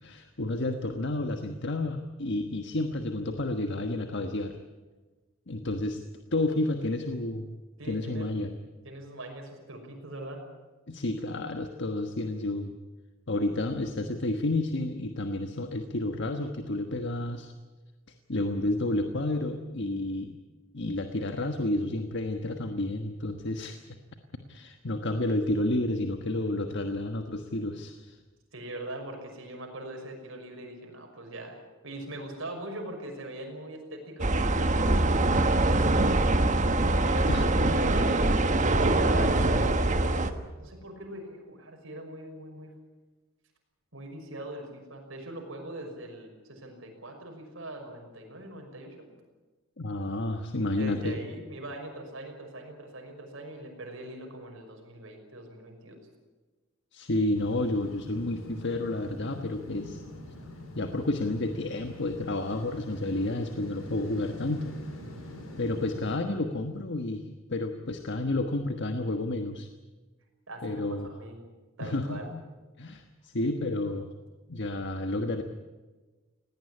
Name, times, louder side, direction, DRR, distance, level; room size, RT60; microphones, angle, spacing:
voice 1, 0.0-4.6 5.5-6.0 6.3-7.5 7.9-8.5 10.9-12.7 13.3-17.5 18.3-20.3 20.7-23.8 24.5-28.2 37.3-37.4 49.8-51.2 56.9-60.0 60.7-64.7 65.6-67.2 67.5-69.7 70.6-71.1 71.8-72.4 72.8-74.1 74.5-75.4, left 2 dB, 60° left, 6 dB, 1.4 m, -30 dB
voice 2, 7.8-8.3 8.8-10.4 28.5-31.6 31.8-36.4 37.0-38.3 38.7-40.2 40.5-42.7 43.9-49.1 50.8-56.0 70.5-71.4 71.8-72.3, right 1 dB, 70° right, 3 dB, 5.9 m, -41 dB
sound 1, 34.2-40.3, right 2 dB, 35° right, 1.3 m, -23 dB
sound 2, 57.3-66.2, left 1 dB, 80° left, 5.1 m, -45 dB
19.5 x 18.0 x 10.0 m, 1.3 s
head